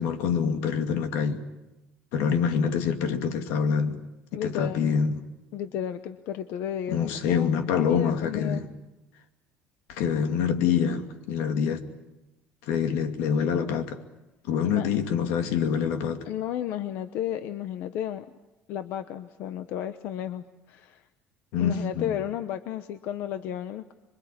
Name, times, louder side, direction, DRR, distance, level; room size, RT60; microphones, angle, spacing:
voice 1, 0.0-1.4 2.1-4.0 4.3-5.2 6.9-8.7 9.9-11.8 12.6-14.0 14.4-16.2 21.5-22.2, left 7 dB, 85° left, 2.6 m, -26 dB
voice 2, 4.3-4.9 5.5-8.6 14.6-14.9 16.2-18.3 18.7-21.0 21.6-23.9, left 10 dB, 60° left, 1.0 m, -33 dB
26.5 x 23.5 x 8.7 m
cardioid pair, 175°, 4 cm